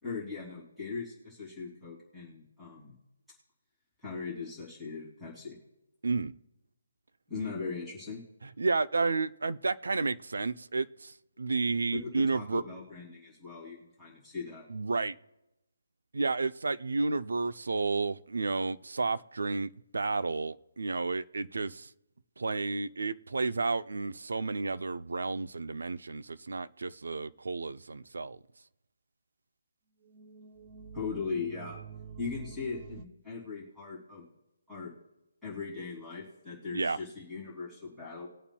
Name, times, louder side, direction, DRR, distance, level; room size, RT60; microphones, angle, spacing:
voice 1, 0.0-2.9 4.0-5.6 7.3-8.2 11.9-14.6 30.9-31.8 32.2-34.2 34.7-34.9 35.4-38.3, left 4 dB, ahead, -8 dB, 2.9 m, -39 dB
voice 2, 8.4-12.6 14.7-15.1 16.1-21.9 22.4-28.4 36.7-37.0, right 3 dB, 80° right, 13 dB, 0.6 m, -31 dB
sound 1, 30.0-33.0, right 6 dB, 20° right, 0.4 m, -47 dB
20.5 x 8.6 x 2.3 m, 0.96 s
hypercardioid pair, 180°, 0 cm